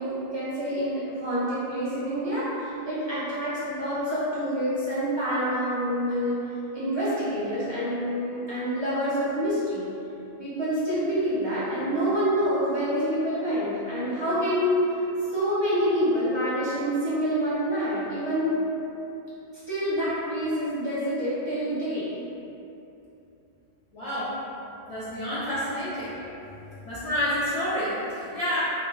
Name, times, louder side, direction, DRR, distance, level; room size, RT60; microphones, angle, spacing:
voice 1, 0.0-6.4 6.7-9.9 10.4-14.9 15.3-18.6 19.7-22.1 26.2-26.3, equal, 35° right, -12 dB, 0.5 m, -27 dB
voice 2, 23.9-24.4 24.9-26.2 26.8-28.6, equal, 50° left, -12 dB, 0.4 m, -29 dB
2.1 x 2.1 x 3.6 m, 2.9 s
omnidirectional pair, 1.1 m